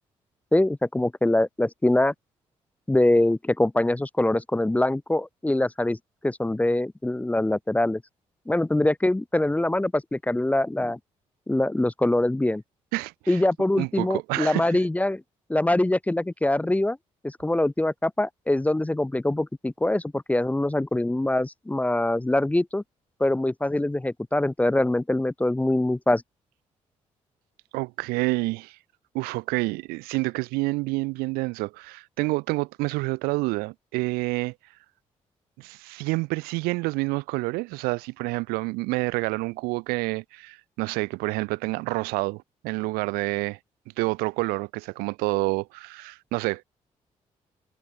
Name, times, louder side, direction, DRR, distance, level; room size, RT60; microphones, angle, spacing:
voice 1, 0.5-2.1 2.9-6.0 6.2-8.0 8.5-11.0 11.5-12.6 13.3-15.2 15.5-17.0 17.2-22.8 23.2-26.2, left 1 dB, 10° left, 0.5 m, -23 dB
voice 2, 12.9-13.4 13.8-14.8 27.7-28.8 29.1-34.5 35.6-43.6 44.0-46.6, right 24 dB, 75° right, 0.4 m, -28 dB
hypercardioid pair, 40°, 16 cm